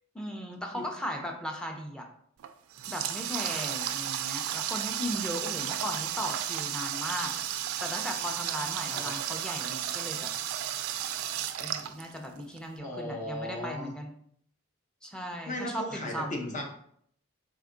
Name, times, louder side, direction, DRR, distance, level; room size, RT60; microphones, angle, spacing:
voice 1, 0.1-2.1 2.9-7.3 7.8-10.3 11.6-14.1 15.0-16.4, equal, 5° left, 2 dB, 0.5 m, -37 dB
Water tap faucet, 2.4-12.6, right 11 dB, 90° right, 0.3 m, -33 dB
voice 2, 8.8-9.2 12.8-13.9 15.5-16.7, left 1 dB, 40° left, 2 dB, 0.7 m, -36 dB
3.5 x 2.3 x 3.7 m, 0.65 s
head